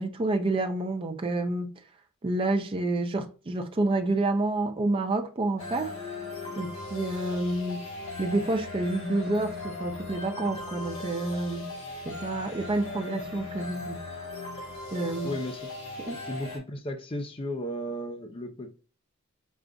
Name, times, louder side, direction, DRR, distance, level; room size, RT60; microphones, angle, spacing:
voice 1, 0.0-1.7 2.2-5.9 6.6-7.8 8.2-11.7 12.1-14.0 14.9-15.3 16.1-16.2, right 2 dB, 25° right, 0.4 m, -29 dB
sound 1, 5.6-16.6, left 3 dB, 80° left, 1.8 m, -38 dB
voice 2, 15.2-15.7 16.1-18.7, left 1 dB, 25° left, 0.5 m, -35 dB
5.0 x 2.5 x 2.2 m
head